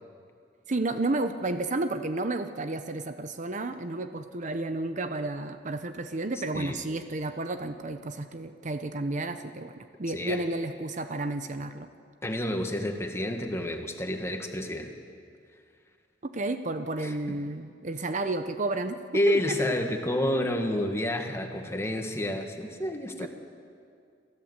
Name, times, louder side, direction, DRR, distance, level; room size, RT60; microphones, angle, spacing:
voice 1, 0.7-11.9 16.3-19.0 19.3-19.6 23.2-23.3, right 2 dB, 45° right, 9 dB, 0.8 m, -31 dB
voice 2, 10.1-10.4 12.2-14.9 17.0-17.1 19.1-23.3, left 1 dB, 15° left, 4 dB, 1.7 m, -29 dB
27.5 x 14.0 x 8.1 m, 2.3 s
head